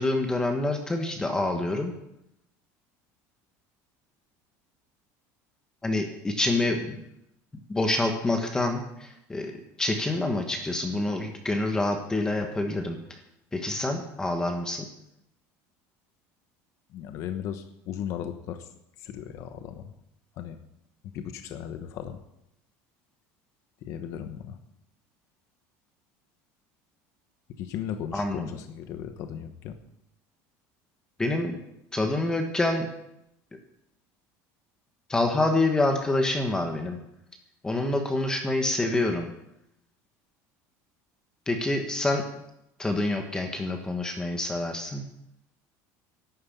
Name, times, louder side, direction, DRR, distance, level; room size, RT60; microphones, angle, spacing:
voice 1, 0.0-1.9 5.8-7.0 7.7-9.5 9.8-13.0 13.5-14.8 28.1-28.5 31.2-31.6 31.9-32.9 35.1-37.0 37.6-39.3 41.5-42.2 42.8-45.0, left 2 dB, 10° left, 4 dB, 1.2 m, -27 dB
voice 2, 16.9-18.7 19.0-19.9 20.3-20.6 21.0-22.2 23.8-24.6 27.6-29.8, left 9 dB, 45° left, 8 dB, 1.0 m, -36 dB
11.5 x 9.5 x 8.5 m, 0.83 s
cardioid pair, 175°, 7 cm